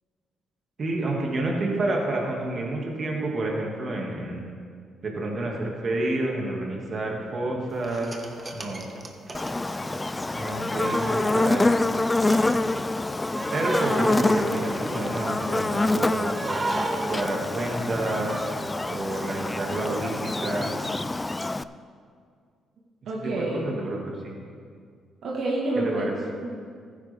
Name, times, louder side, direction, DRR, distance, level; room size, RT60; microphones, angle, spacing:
voice 1, 0.8-4.4 5.0-8.2 8.5-8.8 10.3-11.6 13.5-16.3 17.1-18.3 18.8-20.7 23.2-24.3 25.8-26.1, right 2 dB, 45° right, -1 dB, 2.3 m, -29 dB
sound 1, 7.8-11.9 12.2-15.8 16.2-18.8 19.1-19.2, right 2 dB, 25° right, 1.1 m, -34 dB
Buzz, 9.3-21.6, left 2 dB, 15° left, 0.3 m, -26 dB
voice 2, 23.1-23.8 25.2-26.5, right 1 dB, 70° right, -3 dB, 1.7 m, -28 dB
14.5 x 9.7 x 3.6 m, 2.1 s
cardioid pair, 90°, 0 cm